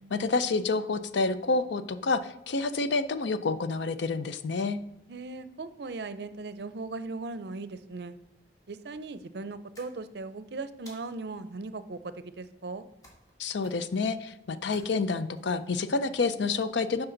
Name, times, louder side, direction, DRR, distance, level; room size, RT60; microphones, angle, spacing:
voice 1, 0.1-4.8 13.4-17.1, left 3 dB, 85° left, 12 dB, 0.5 m, -28 dB
voice 2, 5.1-8.1 8.7-12.9, right 3 dB, 65° right, 13 dB, 0.5 m, -38 dB
sound 1, 9.7-10.3 10.9-11.4 13.0-13.3 13.6-14.0 14.7-15.4, equal, 20° left, 2.0 m, -55 dB
9.9 x 5.6 x 3.9 m, 0.82 s
head